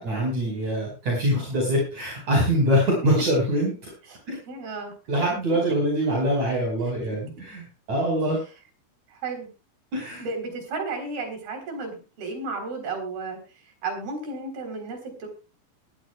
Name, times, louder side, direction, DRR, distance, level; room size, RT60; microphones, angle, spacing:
voice 1, 0.0-3.7 4.3-4.4 5.1-8.4 9.9-10.2, equal, 45° right, -2 dB, 6.3 m, -24 dB
voice 2, 4.5-4.9 9.1-9.5 10.2-15.3, right 3 dB, 65° right, 4 dB, 5.8 m, -33 dB
20.5 x 13.5 x 2.4 m, 0.31 s
omnidirectional pair, 4.6 m